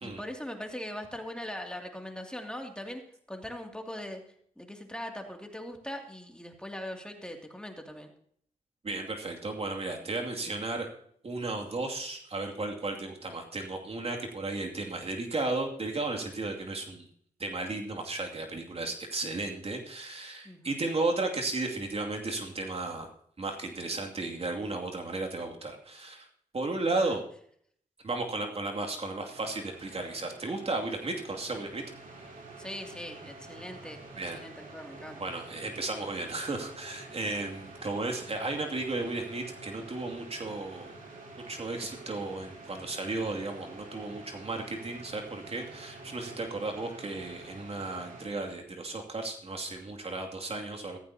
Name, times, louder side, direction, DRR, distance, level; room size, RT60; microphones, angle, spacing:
voice 1, 0.0-3.0 3.3-4.2 4.6-8.1 20.4-20.8 26.9-27.2 32.6-34.0 34.3-35.2, left 1 dB, 5° left, 3 dB, 2.5 m, -40 dB
voice 2, 8.8-10.9 11.2-17.1 17.4-23.1 23.4-26.3 26.5-27.2 28.0-31.8 34.2-34.4 35.2-40.9 41.5-51.0, right 2 dB, 45° right, 2 dB, 2.4 m, -34 dB
sound 1, 29.3-48.3, right 3 dB, 80° right, 3.4 m, -48 dB
14.5 x 14.5 x 2.8 m, 0.63 s
cardioid pair, 65°, 14 cm